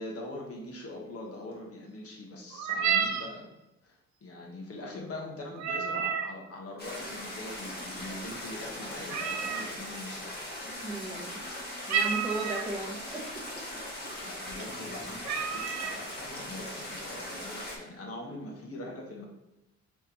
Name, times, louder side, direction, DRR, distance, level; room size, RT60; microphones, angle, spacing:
voice 1, 0.0-3.5 3.8-10.3 14.0-19.2, left 1 dB, 50° left, -1 dB, 1.3 m, -42 dB
sound 1, 2.5-3.3 5.5-6.3 9.1-9.7 11.9-12.7 13.5-13.6 14.0-14.3 14.8-14.9 15.2-16.0, right 7 dB, 65° right, 0.6 m, -30 dB
sound 2, 6.8-17.8, left 1 dB, 30° left, 1.5 m, -40 dB
voice 2, 10.8-11.5 11.9-13.4, right 2 dB, 5° right, 1 dB, 0.8 m, -36 dB
4.8 x 3.4 x 3.0 m, 0.93 s
cardioid pair, 90°, 30 cm